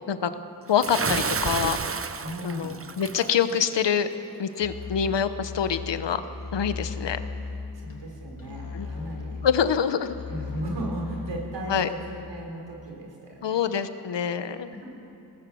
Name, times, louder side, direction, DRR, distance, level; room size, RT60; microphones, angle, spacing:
voice 1, 0.7-1.8 2.4-4.1 4.4-6.2 6.5-7.2 8.7-8.9 9.4-10.1 11.7-11.9 13.4-14.7, left 8 dB, 90° left, 11 dB, 1.1 m, -25 dB
Bathtub (filling or washing) / Splash splatter, 0.8-3.3, right 5 dB, 35° right, 0.8 m, -30 dB
voice 2, 2.2-2.8 7.7-9.4 10.3-13.6, right 1 dB, 85° right, 0 dB, 4.9 m, -36 dB
Musical instrument, 4.6-12.2, left 4 dB, 50° left, 3.2 m, -37 dB
21.5 x 18.0 x 7.7 m, 2.8 s
cardioid pair, 65°, 42 cm